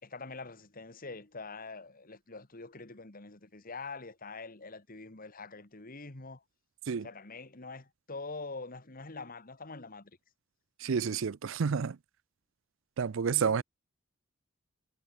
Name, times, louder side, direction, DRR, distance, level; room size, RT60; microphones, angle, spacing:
voice 1, 0.0-6.4 7.0-10.1 13.3-13.6, left 3 dB, 45° left, 2.1 m, -44 dB
voice 2, 10.8-12.0 13.0-13.6, right 6 dB, 70° right, 0.5 m, -29 dB
head